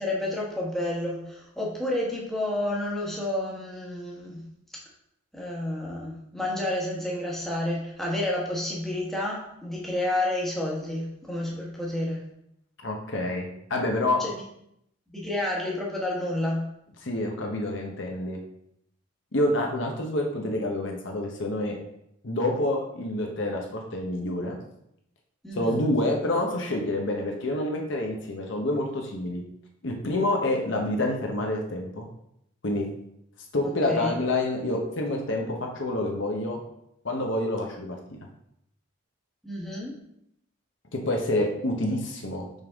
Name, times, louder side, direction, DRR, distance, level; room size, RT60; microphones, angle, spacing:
voice 1, 0.0-4.4 5.3-12.2 14.2-14.3 15.1-16.7 25.4-25.9 33.6-34.1 39.4-39.9, left 1 dB, ahead, -4 dB, 1.2 m, -30 dB
voice 2, 12.8-14.2 17.0-18.4 19.3-21.8 22.2-24.6 25.5-29.5 29.8-32.1 32.6-32.9 33.5-36.6 37.0-38.0 40.9-42.5, left 1 dB, 65° left, 1 dB, 0.9 m, -27 dB
5.5 x 5.4 x 3.5 m, 0.76 s
head